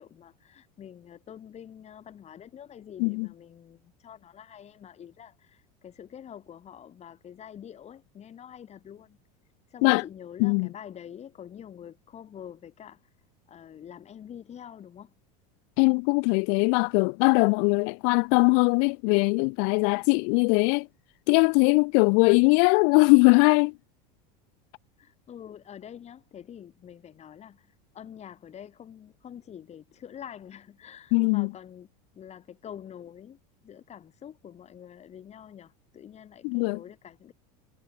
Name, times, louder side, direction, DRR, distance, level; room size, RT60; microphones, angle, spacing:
voice 1, 0.0-9.2 9.7-13.0 13.5-15.1 25.0-31.9 32.2-37.3, left 9 dB, 30° left, 7.1 m, -46 dB
voice 2, 15.8-20.9 21.3-23.7 31.1-31.5 36.4-36.8, left 40 dB or more, 60° left, 0.5 m, -21 dB
supercardioid pair, 115°, 21 cm